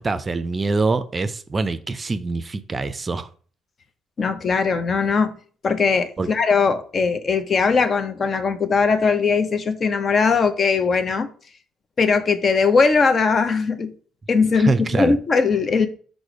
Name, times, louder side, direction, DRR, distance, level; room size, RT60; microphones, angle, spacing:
voice 1, 0.0-3.3 6.2-6.3 14.5-15.1, right 3 dB, 30° right, 0.4 m, -24 dB
voice 2, 4.2-5.3 5.6-11.3 12.0-13.9 14.3-15.9, left 5 dB, 45° left, 0.5 m, -20 dB
4.8 x 2.1 x 4.7 m
hypercardioid pair, 60°, 0 cm